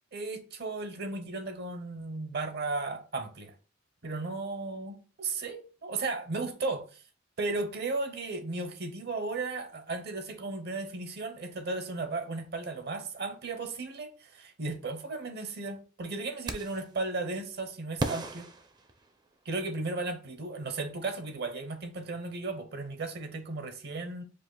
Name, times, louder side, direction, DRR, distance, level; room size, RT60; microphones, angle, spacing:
voice 1, 0.1-3.5 4.0-7.0 7.4-18.5 19.4-24.2, right 3 dB, 55° right, 0.7 m, -35 dB
sound 1, 16.5-16.9 18.0-19.5, right 2 dB, 20° right, 0.5 m, -36 dB
5.1 x 2.4 x 3.9 m
head